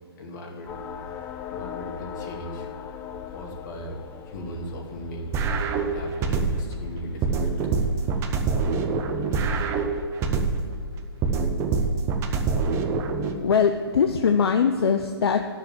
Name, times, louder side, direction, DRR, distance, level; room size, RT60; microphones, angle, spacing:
voice 1, 0.1-2.7 3.3-5.5 5.8-7.6, equal, 45° left, 1 dB, 2.4 m, -38 dB
sound 1, 0.7-10.1, left 8 dB, 15° left, 0.5 m, -41 dB
sound 2, 5.3-6.7 7.2-10.7 11.2-13.3, right 4 dB, 20° right, 0.9 m, -25 dB
voice 2, 13.4-15.5, left 6 dB, 70° left, 6 dB, 0.7 m, -21 dB
10.5 x 6.8 x 7.4 m, 2.3 s
hypercardioid pair, 135°, 14 cm